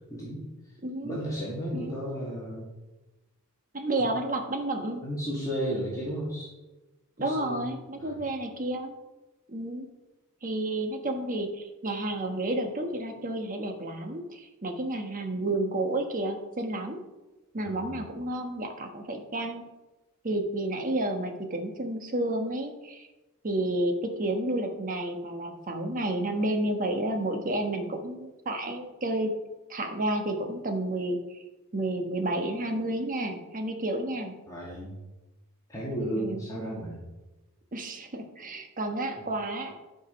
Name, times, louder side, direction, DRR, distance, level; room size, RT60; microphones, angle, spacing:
voice 1, 0.1-0.5 1.0-2.7 5.0-6.5 7.2-7.7 8.0-8.2 17.6-18.1 34.5-35.0 35.7-37.0, equal, 15° left, -7 dB, 2.3 m, -34 dB
voice 2, 0.8-1.2 1.7-2.1 3.7-5.0 7.2-8.9 9.5-9.9 10.4-17.0 17.5-19.7 20.2-23.1 23.4-29.3 29.7-31.4 31.7-34.3 36.2-36.5 37.7-39.8, right 1 dB, 40° right, 4 dB, 1.2 m, -31 dB
11.5 x 5.2 x 5.3 m, 1.1 s
head